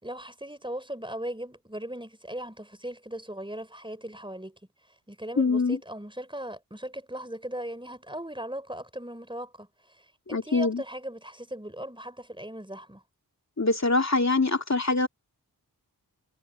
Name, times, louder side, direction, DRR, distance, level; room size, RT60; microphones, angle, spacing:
voice 1, 0.0-4.6 5.1-9.7 10.0-13.0, right 1 dB, 15° right, 5.1 m, -38 dB
voice 2, 5.4-5.8 10.3-10.8 13.6-15.1, left 3 dB, 45° left, 2.6 m, -24 dB
wide cardioid pair, 50°, 37 cm